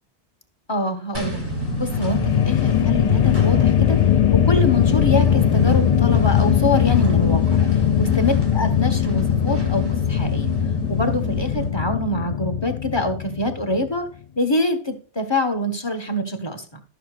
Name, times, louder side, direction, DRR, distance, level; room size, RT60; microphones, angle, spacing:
voice 1, 0.7-1.4 1.8-4.0 4.3-7.6 8.0-10.5 10.9-14.1 14.4-16.8, left 1 dB, 25° left, 6 dB, 1.2 m, -25 dB
sound 1, 1.1-11.7, equal, 10° right, 2.3 m, -29 dB
sound 2, 1.6-13.9, left 10 dB, 60° left, 0.4 m, -20 dB
14.0 x 6.6 x 2.4 m, 0.39 s
omnidirectional pair, 1.2 m